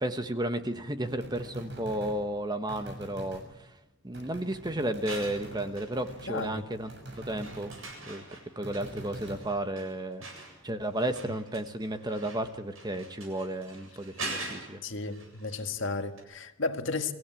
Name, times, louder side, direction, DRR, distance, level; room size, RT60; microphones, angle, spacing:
voice 1, 0.0-3.7 4.0-6.9 7.3-7.7 8.0-10.2 10.6-14.8, right 1 dB, 20° right, 1.2 m, -33 dB
sound 1, 1.1-2.2 2.7-3.5 4.1-7.8 8.6-9.5, right 1 dB, 55° right, 6.8 m, -44 dB
sound 2, 4.9-6.5 6.8-15.9 16.2-16.3, right 2 dB, 85° right, 8.0 m, -44 dB
voice 2, 6.3-6.6 14.8-17.1, left 3 dB, 65° left, 1.7 m, -33 dB
25.0 x 16.0 x 9.1 m
head